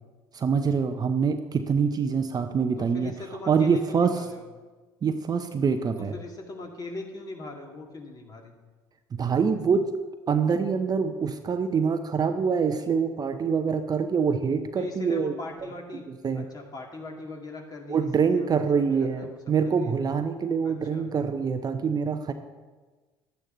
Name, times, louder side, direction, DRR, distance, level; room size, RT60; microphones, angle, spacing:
voice 1, 0.3-3.1 3.5-4.2 5.0-6.1 9.1-9.9 10.3-15.3 16.2-16.5 17.9-22.3, right 6 dB, 35° right, 8 dB, 0.7 m, -25 dB
voice 2, 2.8-4.5 6.0-8.5 14.8-16.0 16.3-19.4 19.6-19.9 20.6-21.1, left 2 dB, 35° left, 1 dB, 2.4 m, -40 dB
11.5 x 8.9 x 3.9 m, 1.3 s
hypercardioid pair, 60°, 12 cm